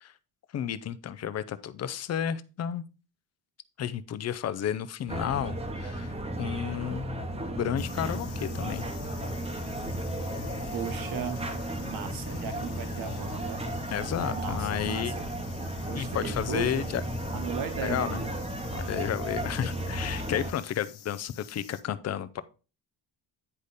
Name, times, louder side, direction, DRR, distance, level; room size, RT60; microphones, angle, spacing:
voice 1, 0.5-2.8 3.8-8.8 13.9-15.1 15.9-17.0 17.8-18.2 18.7-22.4, left 9 dB, 40° left, 14 dB, 0.5 m, -32 dB
sound 1, 5.1-20.5, right 1 dB, 15° right, 0.9 m, -34 dB
sound 2, 7.8-21.8, left 10 dB, 70° left, 1.2 m, -49 dB
voice 2, 10.7-11.4 11.8-13.6 14.3-15.3 15.8-16.8 17.3-18.3, right 7 dB, 55° right, 8 dB, 1.4 m, -36 dB
sound 3, 13.7-20.0, left 2 dB, ahead, 1.4 m, -53 dB
9.8 x 5.1 x 4.1 m, 0.33 s
cardioid pair, 170°, 40 cm